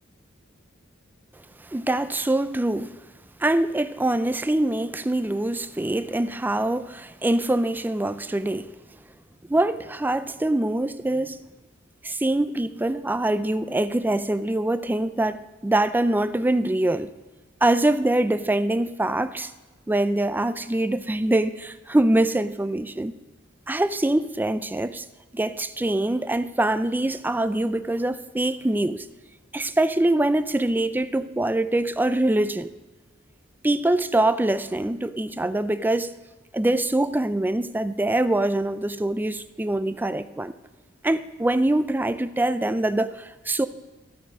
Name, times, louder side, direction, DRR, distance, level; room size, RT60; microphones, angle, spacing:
voice 1, 1.7-3.0 3.4-8.7 9.5-11.5 12.0-17.1 17.6-19.5 19.9-23.1 23.7-25.0 25.3-29.1 29.5-32.7 33.6-36.1 36.5-40.5 41.0-43.7, right 1 dB, 10° right, 0.4 m, -24 dB
13.0 x 7.9 x 5.1 m
head